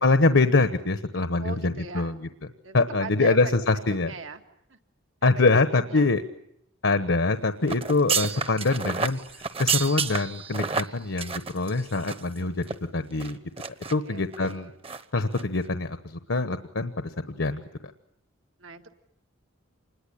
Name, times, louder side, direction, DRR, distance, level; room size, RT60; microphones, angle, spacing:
voice 1, 0.0-2.3 2.7-4.1 5.2-6.2 6.8-9.2 9.6-12.7 12.9-13.4 13.9-14.7 15.1-16.9 17.3-17.6, left 3 dB, 70° left, 10 dB, 1.1 m, -24 dB
voice 2, 1.4-2.2 2.6-4.4 4.7-4.8 5.2-5.6 5.9-6.2 13.8-14.8 18.6-18.9, right 4 dB, 75° right, 6 dB, 2.0 m, -40 dB
sound 1, 7.7-12.4 12.6-12.7 13.2-13.9 14.3-14.5 14.8-15.0 15.3-15.4, right 6 dB, 30° right, 1.1 m, -30 dB
27.0 x 21.0 x 10.0 m, 0.77 s
head